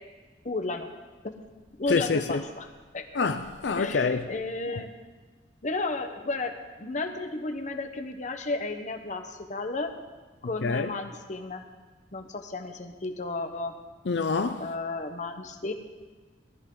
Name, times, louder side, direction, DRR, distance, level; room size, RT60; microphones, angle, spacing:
voice 1, 0.4-0.9 1.2-1.4 1.8-2.7 2.9-3.2 3.8-4.9 5.6-9.9 10.4-11.6 12.1-13.7 14.6-15.7, left 3 dB, 45° left, 1.1 m, -33 dB
voice 2, 1.9-2.2 3.1-4.3 10.6-10.9 14.1-14.7, left 4 dB, 80° left, 0.6 m, -26 dB
18.5 x 13.0 x 3.9 m
head